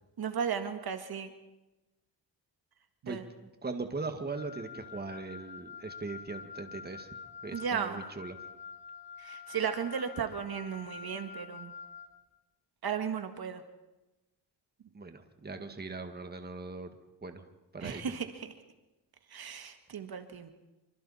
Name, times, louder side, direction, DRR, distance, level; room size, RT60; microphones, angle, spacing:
voice 1, 0.2-1.3 3.0-3.2 7.5-8.0 9.2-11.7 12.8-13.6 17.8-18.5 19.3-20.5, right 7 dB, 55° right, 7 dB, 1.8 m, -35 dB
voice 2, 3.1-7.1 7.4-8.4 14.9-16.9 17.2-17.4 17.7-18.0, right 3 dB, 20° right, 6 dB, 2.0 m, -40 dB
Wind instrument woodwind instrument, 4.4-12.1, left 6 dB, 65° left, 3.9 m, -47 dB
27.0 x 24.5 x 4.3 m, 1.0 s
cardioid pair, 95°, 44 cm